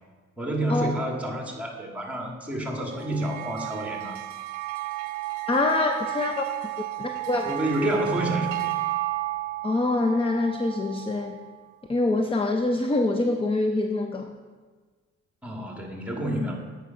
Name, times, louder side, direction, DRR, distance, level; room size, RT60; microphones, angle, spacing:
voice 1, 0.4-4.2 7.4-8.6 15.4-16.6, right 1 dB, 5° right, 1 dB, 1.6 m, -29 dB
sound 1, 2.9-11.6, right 18 dB, 80° right, 0.5 m, -33 dB
voice 2, 5.5-6.7 7.0-7.5 9.6-11.4 11.9-14.3, left 2 dB, 20° left, 5 dB, 0.5 m, -25 dB
8.4 x 5.2 x 5.5 m, 1.4 s
cardioid pair, 90°, 30 cm